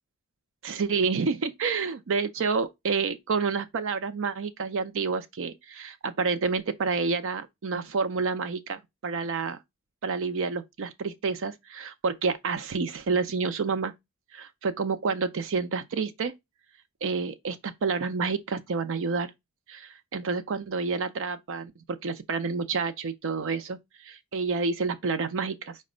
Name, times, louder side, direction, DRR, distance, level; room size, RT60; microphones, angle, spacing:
voice 1, 0.6-9.6 10.0-13.9 14.3-16.3 17.0-19.3 19.7-25.8, right 4 dB, 60° right, 0.5 m, -29 dB
5.0 x 2.2 x 4.8 m
head